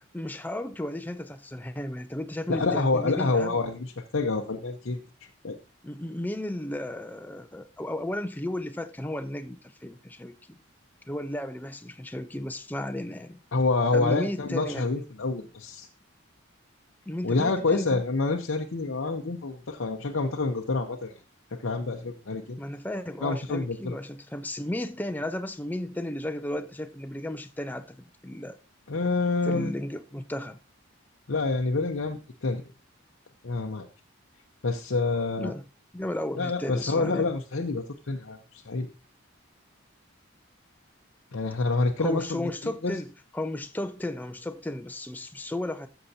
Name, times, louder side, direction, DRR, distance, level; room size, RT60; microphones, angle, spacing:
voice 1, 0.1-3.6 5.8-10.6 11.1-13.4 13.9-14.9 17.1-18.0 22.6-28.6 29.4-30.6 35.4-35.6 35.9-37.3 42.0-45.9, left 1 dB, 10° left, 0.4 m, -34 dB
voice 2, 2.5-5.0 5.4-5.6 13.5-15.9 17.2-21.1 21.6-22.6 23.2-24.0 28.9-29.7 31.3-32.6 33.4-33.9 34.6-35.5 36.4-38.9 41.3-43.0, left 3 dB, 65° left, 0.7 m, -27 dB
13.5 x 6.9 x 2.8 m
head